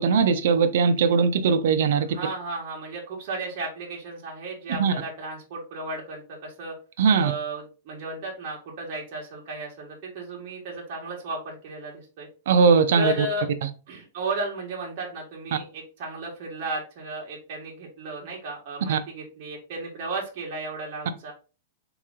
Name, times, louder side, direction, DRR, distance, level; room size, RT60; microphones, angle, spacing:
voice 1, 0.0-2.1 4.8-4.9 7.0-7.3 12.5-13.1 18.9-19.0, right 5 dB, 70° right, 0.5 m, -20 dB
voice 2, 2.1-6.7 7.2-12.3 13.0-13.5 13.9-21.3, right 2 dB, 45° right, 1.3 m, -34 dB
3.7 x 3.0 x 3.6 m
supercardioid pair, 155°, 0 cm